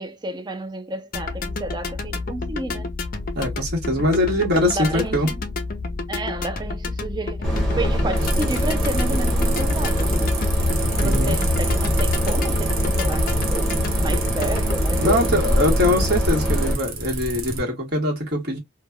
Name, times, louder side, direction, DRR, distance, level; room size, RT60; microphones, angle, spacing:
voice 1, 0.0-2.9 4.6-5.4 6.1-10.4 10.9-15.5, right 2 dB, 20° right, 0.4 m, -31 dB
sound 1, 1.1-14.9, left 3 dB, 40° left, 0.5 m, -30 dB
voice 2, 3.3-5.3 11.0-11.3 15.0-18.6, left 1 dB, 50° right, 1.3 m, -22 dB
sound 2, 7.4-16.7, equal, ahead, 1.0 m, -22 dB
sound 3, 8.2-17.6, right 3 dB, 85° right, 0.9 m, -31 dB
3.2 x 2.2 x 2.2 m
head